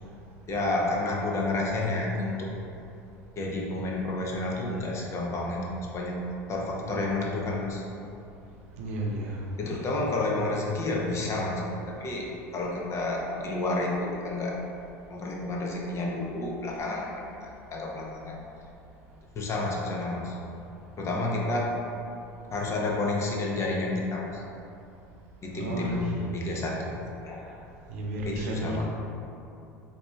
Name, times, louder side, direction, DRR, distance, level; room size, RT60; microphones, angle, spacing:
voice 1, 0.5-2.5 3.4-7.8 9.6-12.3 12.5-14.5 15.1-17.1 17.4-18.4 19.3-20.4 21.0-21.7 22.5-24.4 25.4-27.0 27.2-27.4 28.2-28.9, left 2 dB, 35° left, -1 dB, 0.6 m, -30 dB
voice 2, 8.8-9.4 25.5-26.1 27.5-27.6 27.9-28.9, right 1 dB, 75° right, -2 dB, 0.6 m, -32 dB
4.0 x 2.8 x 2.3 m, 2.6 s
hypercardioid pair, 75°, 8 cm